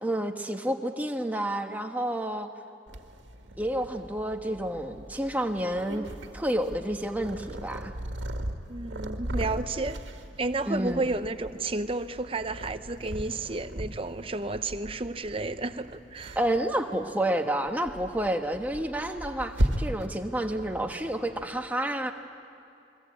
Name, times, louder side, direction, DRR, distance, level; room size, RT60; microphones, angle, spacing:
voice 1, 0.0-2.5 3.6-6.0 6.3-7.9 10.7-11.1 16.3-22.1, right 1 dB, 10° right, 4 dB, 1.2 m, -29 dB
Purr, 2.9-21.6, right 1 dB, 85° right, 1.8 m, -37 dB
voice 2, 8.7-10.0 10.4-16.4, right 2 dB, 30° right, 10 dB, 0.8 m, -32 dB
29.0 x 22.5 x 8.5 m, 2.5 s
head